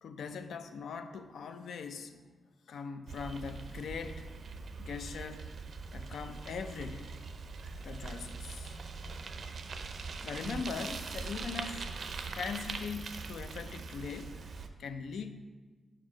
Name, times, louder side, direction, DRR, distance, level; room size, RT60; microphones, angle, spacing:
voice 1, 0.0-2.2 2.7-4.3 4.8-5.5 5.9-7.2 7.8-8.8 10.2-11.9 12.3-14.4 14.8-15.4, left 5 dB, 80° left, 8 dB, 0.5 m, -41 dB
Bicycle, 3.1-14.7, right 4 dB, 60° right, 0.5 m, -42 dB
4.8 x 4.6 x 6.0 m, 1.3 s
cardioid pair, 100°, 0 cm